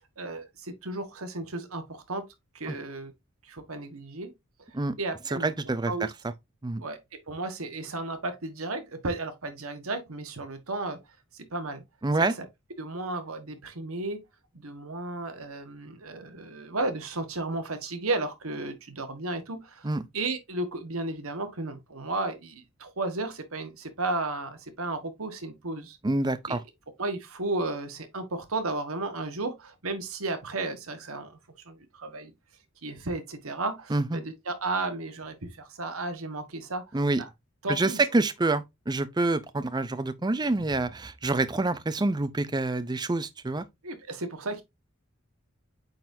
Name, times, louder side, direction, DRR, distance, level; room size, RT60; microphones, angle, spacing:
voice 1, 0.2-2.2 2.5-3.1 3.5-4.3 5.0-5.5 5.9-6.1 6.8-7.0 7.3-11.0 11.5-11.8 12.2-12.3 12.8-14.2 14.6-19.8 20.1-26.0 26.5-26.6 27.0-31.4 31.7-32.3 32.8-36.8 37.2-37.3 37.6-38.0 43.8-44.6, right 2 dB, 80° right, 1.4 m, -33 dB
voice 2, 5.3-6.3 6.6-6.8 12.0-12.3 19.8-20.0 26.0-26.6 33.9-34.2 36.9-37.2 37.7-43.6, right 2 dB, 20° right, 0.5 m, -27 dB
8.6 x 4.0 x 2.7 m
head